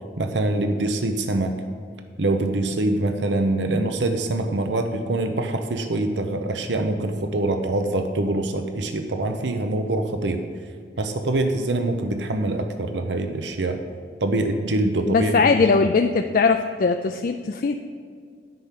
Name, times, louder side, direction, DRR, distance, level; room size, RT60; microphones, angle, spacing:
voice 1, 0.2-1.5 2.2-10.4 11.0-13.8 14.2-15.7, right 2 dB, 80° right, 6 dB, 0.8 m, -24 dB
voice 2, 15.1-17.8, left 4 dB, 50° left, 6 dB, 0.4 m, -20 dB
9.2 x 5.9 x 8.4 m, 2.1 s
head